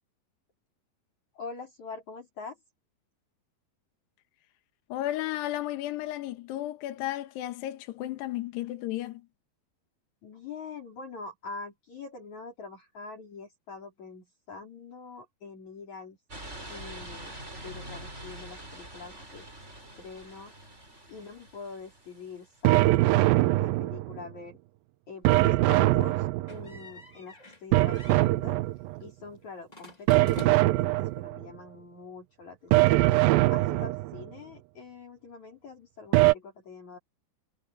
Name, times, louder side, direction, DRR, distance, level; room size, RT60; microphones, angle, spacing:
voice 1, 1.3-2.6 10.2-16.2 16.7-17.3 17.6-19.5 20.0-20.5 21.1-24.6 25.1-28.6 29.0-33.2 33.5-37.0, left 4 dB, 45° left, 5.5 m, -44 dB
voice 2, 4.9-9.3, left 14 dB, 85° left, 3.4 m, -33 dB
sound 1, 16.3-22.6, right 1 dB, 15° right, 6.2 m, -45 dB
sound 2, 22.6-24.2 25.2-26.8 27.7-29.0 30.1-31.4 32.7-34.2 36.1-36.3, right 18 dB, 90° right, 2.1 m, -22 dB
sound 3, 26.5-27.6 27.9-28.3 29.7-30.9, left 1 dB, 20° left, 1.0 m, -46 dB
omnidirectional pair, 4.8 m